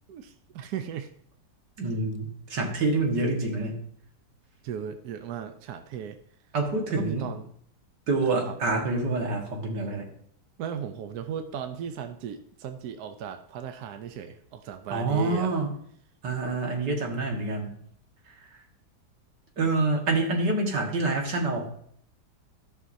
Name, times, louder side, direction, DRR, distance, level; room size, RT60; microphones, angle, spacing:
voice 1, 0.1-1.1 4.6-6.2 6.9-7.5 8.3-8.5 10.6-15.5, right 8 dB, 70° right, 7 dB, 1.2 m, -36 dB
voice 2, 1.8-3.8 6.5-7.3 8.1-10.1 14.9-15.7 16.2-17.8 19.6-21.7, right 3 dB, 90° right, 1 dB, 2.3 m, -27 dB
14.0 x 5.9 x 2.7 m, 0.64 s
omnidirectional pair, 1.8 m